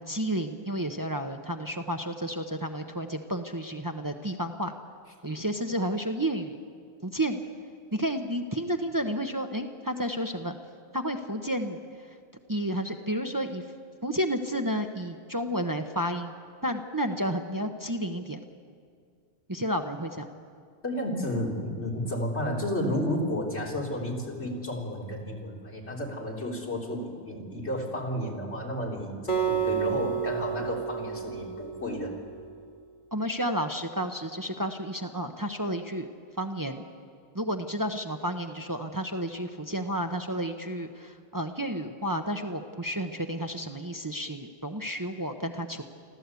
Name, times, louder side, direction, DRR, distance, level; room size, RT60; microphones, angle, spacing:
voice 1, 0.0-4.7 5.2-6.6 7.0-7.4 7.9-10.6 10.9-12.2 12.5-13.6 14.0-16.3 16.6-18.4 19.5-20.3 33.1-36.1 36.4-36.9 37.3-45.8, equal, 20° right, 5 dB, 0.9 m, -31 dB
voice 2, 20.8-32.1, equal, 85° left, -2 dB, 3.8 m, -32 dB
Acoustic guitar, 29.3-32.5, right 8 dB, 50° left, 1.8 m, -31 dB
25.5 x 14.5 x 8.3 m, 2.2 s
omnidirectional pair, 1.1 m